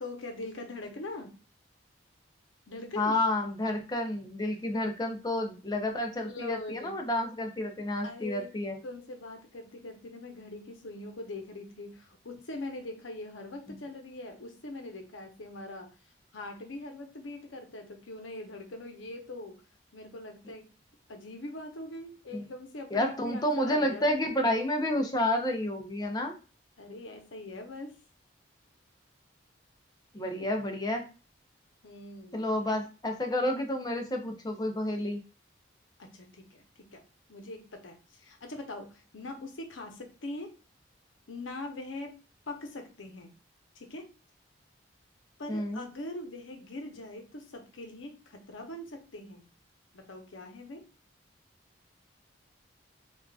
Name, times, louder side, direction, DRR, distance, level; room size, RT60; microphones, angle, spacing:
voice 1, 0.0-1.4 2.7-3.2 6.2-7.0 8.0-8.5 8.8-15.9 16.3-19.6 19.9-20.7 21.1-24.1 26.8-28.0 31.8-32.5 36.0-37.0 37.3-40.6 41.3-42.2 42.5-43.3 43.8-44.1 45.4-49.5 49.9-50.9, left 2 dB, 75° left, 4 dB, 0.8 m, -42 dB
voice 2, 3.0-8.8 13.7-13.8 22.3-22.4 22.9-26.3 30.1-31.1 32.3-35.2 45.5-45.8, left 1 dB, 20° left, 3 dB, 0.5 m, -30 dB
3.5 x 2.4 x 2.3 m, 0.33 s
head